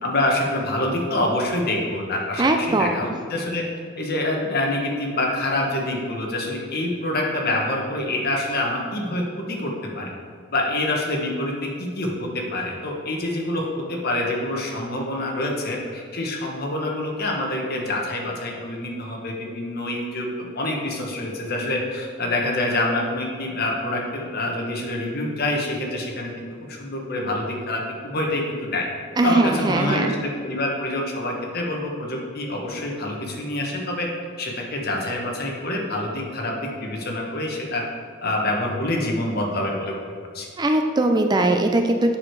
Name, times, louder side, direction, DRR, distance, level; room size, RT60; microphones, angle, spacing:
voice 1, 0.0-3.6 4.0-10.1 10.5-28.9 29.2-34.1 34.4-37.8 38.2-40.0 40.3-40.5, left 1 dB, 50° left, 0 dB, 1.3 m, -26 dB
voice 2, 2.4-2.9 29.2-30.1 40.6-42.1, right 2 dB, 20° right, 5 dB, 0.4 m, -20 dB
7.4 x 6.5 x 4.6 m, 2.2 s
head